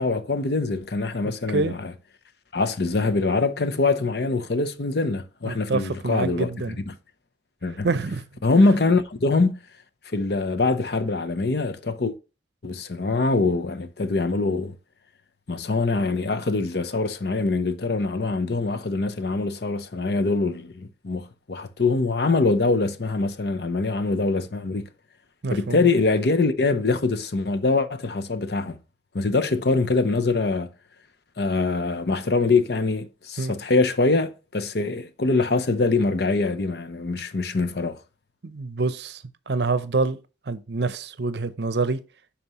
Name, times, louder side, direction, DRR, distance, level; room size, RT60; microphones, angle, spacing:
voice 1, 0.0-1.9 2.5-6.5 6.9-7.0 7.6-7.9 8.4-9.6 10.1-12.1 12.6-14.7 15.5-24.9 25.5-28.8 29.1-30.7 31.4-38.0, left 3 dB, 60° left, 0.7 m, -23 dB
voice 2, 5.4-6.8 7.8-8.2 25.4-25.9 33.4-33.5 38.4-40.2 40.5-42.0, right 3 dB, 65° right, 0.6 m, -26 dB
11.0 x 4.3 x 3.0 m
head